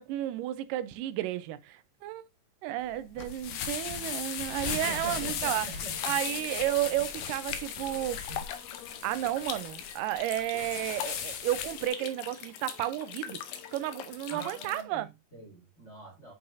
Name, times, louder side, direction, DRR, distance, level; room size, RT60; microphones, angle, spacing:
voice 1, 0.0-2.3 2.6-5.7 6.0-8.2 9.0-13.4 13.7-15.1, right 14 dB, 85° right, 2.2 m, -32 dB
sound 1, 2.8-11.9, left 8 dB, 75° left, 2.3 m, -37 dB
voice 2, 4.7-6.1 8.3-8.4 14.3-16.3, right 3 dB, 25° left, 1.6 m, -44 dB
sound 2, 5.9-14.8, left 9 dB, 90° left, 2.6 m, -42 dB
8.9 x 5.5 x 2.6 m
omnidirectional pair, 3.8 m